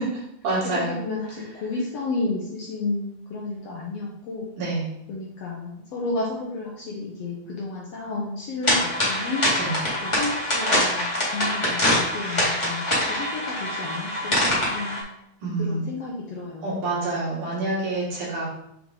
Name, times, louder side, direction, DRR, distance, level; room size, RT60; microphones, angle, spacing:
voice 1, 0.0-1.0 4.6-4.8 9.6-9.8 15.4-15.8 16.6-18.5, right 2 dB, 75° right, -7 dB, 4.0 m, -27 dB
voice 2, 0.9-4.5 5.1-9.4 10.0-15.0 15.6-16.9, left 3 dB, 70° left, -3 dB, 1.6 m, -32 dB
sound 1, 8.6-15.0, left 1 dB, 15° left, 1.1 m, -24 dB
7.5 x 3.4 x 3.7 m, 0.78 s
omnidirectional pair, 3.7 m